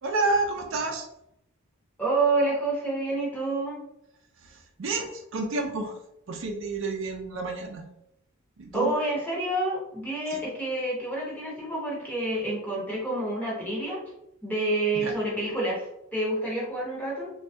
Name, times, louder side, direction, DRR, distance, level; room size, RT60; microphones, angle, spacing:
voice 1, 0.0-1.1 4.4-6.0 6.3-7.8 8.6-8.9 10.3-10.4 14.9-15.2, right 3 dB, 60° right, 3 dB, 0.4 m, -30 dB
voice 2, 2.0-3.8 8.7-14.0 14.4-17.3, right 2 dB, 5° left, -5 dB, 0.8 m, -28 dB
3.1 x 2.2 x 2.7 m, 0.81 s
head